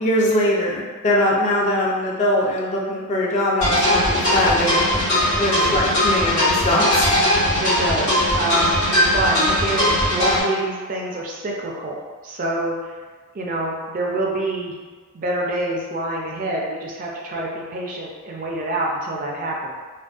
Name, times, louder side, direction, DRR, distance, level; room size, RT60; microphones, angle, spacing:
voice 1, 0.0-5.0 5.4-7.1, left 1 dB, 35° left, -4 dB, 0.4 m, -21 dB
sound 1, 3.6-10.4, left 1 dB, 75° left, 1.1 m, -19 dB
voice 2, 7.6-8.8 9.1-12.9 13.3-14.8 15.1-19.7, right 1 dB, 40° right, -2 dB, 0.4 m, -26 dB
2.5 x 2.1 x 2.3 m, 1.5 s
head